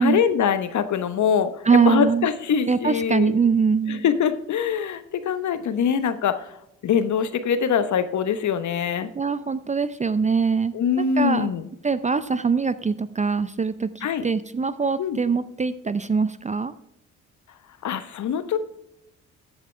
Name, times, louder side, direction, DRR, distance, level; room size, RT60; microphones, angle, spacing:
voice 1, 0.0-3.4 3.9-6.5 6.8-9.1 10.7-11.6 14.0-14.2 15.0-15.2 17.8-18.6, left 7 dB, 50° left, 12 dB, 1.1 m, -23 dB
voice 2, 1.6-2.3 2.7-4.0 9.1-11.5 11.8-16.7, right 5 dB, 20° right, 15 dB, 0.5 m, -23 dB
14.0 x 8.2 x 3.4 m, 0.82 s
hypercardioid pair, 50°, 37 cm